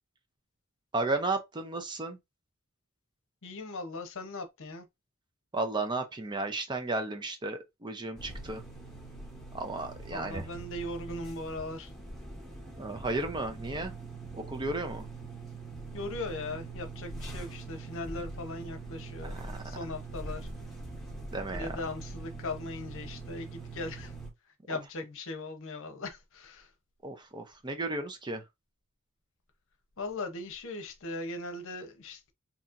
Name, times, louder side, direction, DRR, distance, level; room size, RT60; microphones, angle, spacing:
voice 1, 0.9-2.2 5.5-8.6 9.5-10.4 12.8-13.9 14.3-15.1 19.3-19.5 21.3-21.8 27.0-28.4, right 2 dB, 20° right, 0.6 m, -34 dB
voice 2, 3.4-4.9 10.1-11.9 15.9-19.4 19.6-20.5 21.5-24.1 24.7-26.7 30.0-32.3, left 2 dB, 60° left, 0.8 m, -39 dB
sound 1, 8.2-24.3, right 3 dB, ahead, 1.4 m, -43 dB
4.1 x 2.8 x 2.5 m
head